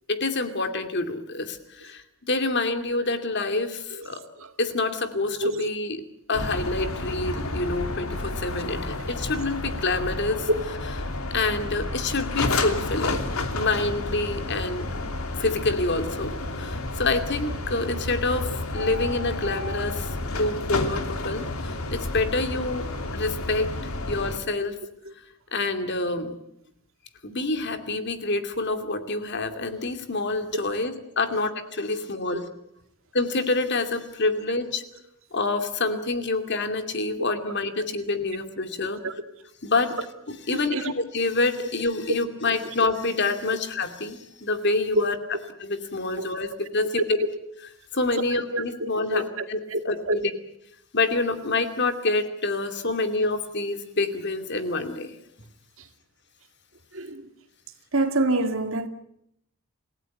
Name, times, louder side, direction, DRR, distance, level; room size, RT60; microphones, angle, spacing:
voice 1, 0.1-4.2 4.6-10.5 11.3-13.2 13.5-14.9 15.4-22.9 23.1-23.7 24.1-24.7 25.5-26.4 27.2-32.5 33.1-34.8 35.3-39.0 39.6-40.0 40.3-45.2 45.6-47.0 47.9-49.2 49.5-49.6 49.8-50.2 50.9-55.2, left 3 dB, 55° left, 2.6 m, -27 dB
sound 1, 6.3-24.4, left 2 dB, 85° left, 3.0 m, -31 dB
voice 2, 48.5-49.4 49.7-49.8 50.1-50.2 55.8-55.9 56.9-57.3 57.9-58.9, right 2 dB, 65° right, 2.3 m, -27 dB
28.5 x 17.0 x 9.2 m
head